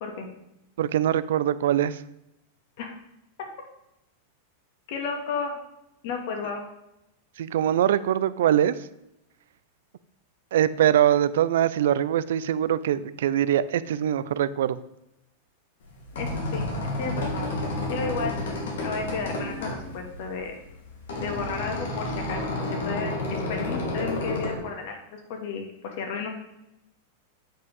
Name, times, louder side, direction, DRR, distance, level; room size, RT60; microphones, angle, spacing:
voice 1, 0.8-2.0 7.4-8.7 10.5-14.8, right 11 dB, 75° right, 16 dB, 0.4 m, -23 dB
voice 2, 4.9-5.6 6.0-6.6 16.1-17.5 17.9-18.4 18.8-20.5 21.2-22.4 22.7-26.3, left 5 dB, 60° left, 3 dB, 2.2 m, -33 dB
sound 1, 15.8-24.5, left 2 dB, 80° left, 2.5 m, -31 dB
8.5 x 5.4 x 5.3 m, 0.86 s
hypercardioid pair, 120°, 0 cm